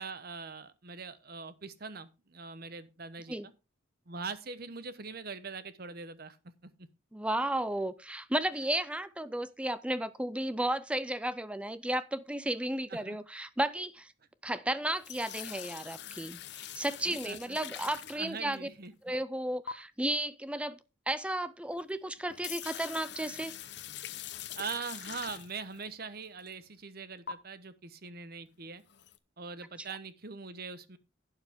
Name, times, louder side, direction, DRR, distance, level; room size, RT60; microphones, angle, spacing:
voice 1, 0.0-3.5 4.1-6.4 6.6-6.9 12.9-13.2 17.0-17.9 18.1-18.9 24.5-28.8 29.4-31.0, right 4 dB, 50° right, 1.0 m, -42 dB
voice 2, 7.1-14.1 14.4-18.7 19.0-20.8 21.1-23.5, right 1 dB, 5° right, 0.4 m, -33 dB
sound 1, 14.9-18.8 19.7-19.8 21.7-21.8 22.2-25.8 26.4-26.5 27.3-27.4 28.9-29.2, left 10 dB, 60° left, 0.8 m, -43 dB
11.5 x 8.9 x 3.6 m
head